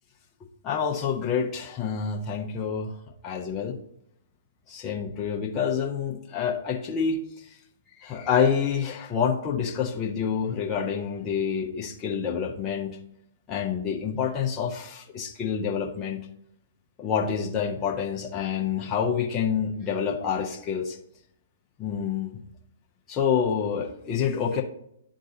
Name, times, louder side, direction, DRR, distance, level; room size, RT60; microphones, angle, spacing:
voice 1, 0.6-2.9 3.2-3.7 4.7-7.2 8.0-13.0 13.5-16.2 17.0-21.0 21.8-22.4 23.1-24.6, left 7 dB, 25° left, -1 dB, 0.9 m, -27 dB
10.5 x 3.7 x 2.7 m, 0.72 s
figure-of-eight pair, 120°, 0 cm